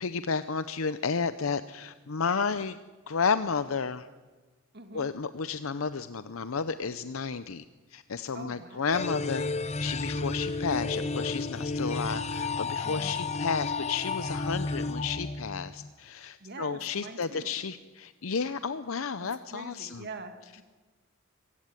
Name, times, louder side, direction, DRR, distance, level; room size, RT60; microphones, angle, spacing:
voice 1, 0.0-2.8 3.1-4.1 4.9-7.6 7.9-9.5 9.8-20.1, left 5 dB, 80° left, 12 dB, 0.7 m, -32 dB
voice 2, 4.7-5.1 8.3-9.2 12.8-13.1 16.4-17.6 19.2-20.6, right 3 dB, 55° right, 6 dB, 2.5 m, -44 dB
sound 1, 8.9-15.9, left 3 dB, 35° left, 0.8 m, -32 dB
25.0 x 16.0 x 9.0 m, 1.3 s
head